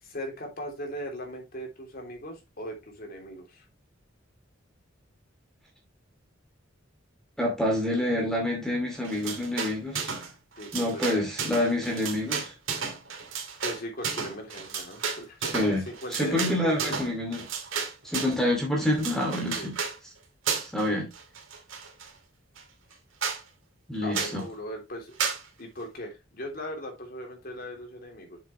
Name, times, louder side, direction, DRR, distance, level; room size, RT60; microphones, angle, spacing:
voice 1, 0.0-3.6 10.6-11.0 13.6-17.0 19.5-19.7 24.0-25.1 25.6-28.4, equal, 50° left, 3.2 m, -39 dB
voice 2, 7.4-10.2 10.7-12.5 15.4-17.5 18.0-19.8 20.6-21.1 23.9-24.5, left 1 dB, 5° left, 2.5 m, -27 dB
sound 1, 9.0-10.3 10.6-18.4 18.8-20.0 20.5-20.9 21.1-22.1 22.6-22.7 22.9-23.0 23.2-23.4 24.1-24.4 25.2-25.4, right 6 dB, 80° right, 2.5 m, -33 dB
7.2 x 7.2 x 3.2 m
head